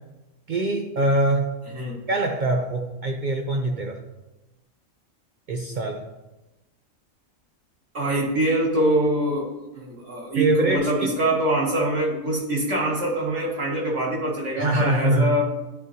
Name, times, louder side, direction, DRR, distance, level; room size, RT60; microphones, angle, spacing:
voice 1, 0.5-1.6 2.1-4.0 5.5-6.1 10.3-10.9 14.5-15.4, right 2 dB, 80° right, 3 dB, 0.4 m, -23 dB
voice 2, 7.9-15.4, right 1 dB, 60° right, -3 dB, 1.8 m, -24 dB
10.5 x 3.8 x 2.7 m, 1.0 s
omnidirectional pair, 1.5 m